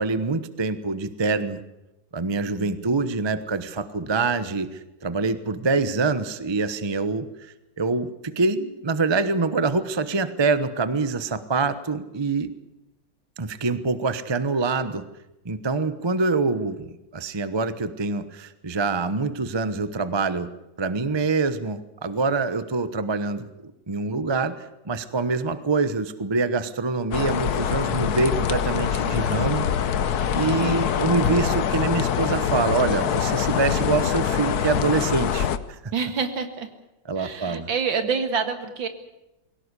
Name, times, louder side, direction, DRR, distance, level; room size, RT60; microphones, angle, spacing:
voice 1, 0.0-1.6 2.1-7.3 7.8-12.5 13.4-15.0 15.4-16.9 17.1-20.5 20.8-23.5 23.9-29.7 30.3-35.8 37.1-37.7, right 4 dB, 20° right, 13 dB, 0.7 m, -25 dB
sound 1, 27.1-35.6, left 8 dB, 60° left, 1.3 m, -24 dB
voice 2, 35.9-36.7 37.2-38.9, right 5 dB, 70° right, 8 dB, 2.6 m, -27 dB
22.0 x 17.5 x 8.2 m, 0.92 s
omnidirectional pair, 2.1 m